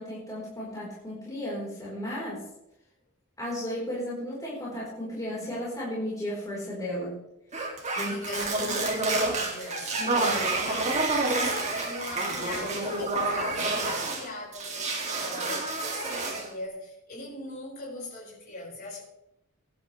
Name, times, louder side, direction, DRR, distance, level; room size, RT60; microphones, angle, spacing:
voice 1, 0.0-2.5 3.4-7.2 7.9-8.9 10.0-10.4, equal, 15° left, -7 dB, 4.3 m, -34 dB
sound 1, 7.5-14.2 14.5-16.5, right 2 dB, 35° right, 2.6 m, -29 dB
voice 2, 7.9-19.0, left 2 dB, 50° left, -5 dB, 5.3 m, -41 dB
19.5 x 11.0 x 3.3 m, 0.84 s
head